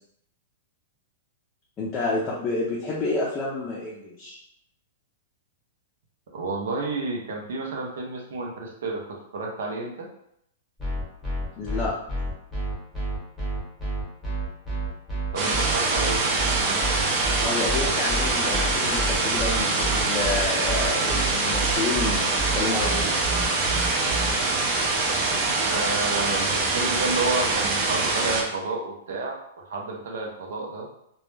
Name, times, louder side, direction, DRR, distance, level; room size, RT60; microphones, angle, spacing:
voice 1, 1.8-4.4 11.6-11.9 17.4-23.1, left 3 dB, 20° left, -5 dB, 0.5 m, -29 dB
voice 2, 6.3-9.0 9.3-10.1 15.3-16.8 25.6-29.3 29.7-30.9, right 3 dB, 75° right, -1 dB, 0.6 m, -30 dB
sound 1, 10.8-24.3, right 2 dB, ahead, 1.0 m, -29 dB
sound 2, 15.4-28.4, right 3 dB, 30° right, 0.4 m, -24 dB
2.2 x 2.0 x 3.1 m, 0.74 s
hypercardioid pair, 150°, 0 cm